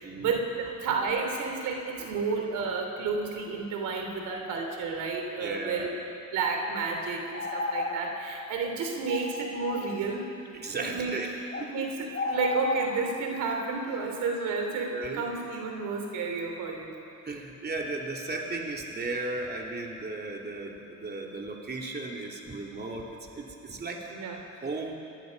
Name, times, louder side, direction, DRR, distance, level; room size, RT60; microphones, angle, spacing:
voice 1, 0.0-0.5 0.8-5.9 6.3-10.2 10.5-11.1 11.7-12.0 12.3-17.0 24.1-24.4, right 4 dB, 90° right, 2 dB, 3.4 m, -31 dB
voice 2, 5.4-5.9 10.6-11.3 11.6-11.9 14.9-15.2 17.2-24.1 24.6-25.0, right 2 dB, 35° right, 0 dB, 3.1 m, -35 dB
sound 1, 7.3-8.0 8.4-8.5 9.1-10.0 11.5-11.7 12.1-13.0, left 3 dB, 35° left, 3.0 m, -32 dB
26.0 x 20.5 x 5.4 m, 2.7 s
cardioid pair, 90°, 30 cm